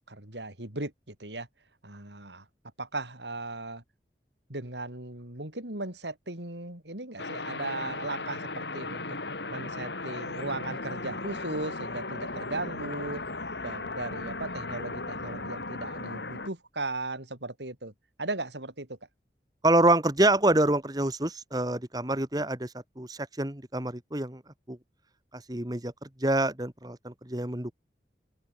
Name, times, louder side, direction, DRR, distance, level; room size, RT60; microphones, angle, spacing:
voice 1, 0.1-1.5 1.8-2.4 2.8-3.8 4.5-9.2 9.5-13.2 13.6-17.9 18.2-18.9, right 2 dB, 85° right, 5.6 m, -37 dB
sound 1, 7.2-16.5, left 3 dB, 80° left, 5.8 m, -36 dB
voice 2, 19.6-24.4 24.7-24.8 25.3-25.9 26.2-27.7, right 1 dB, 20° right, 1.9 m, -26 dB
open air
head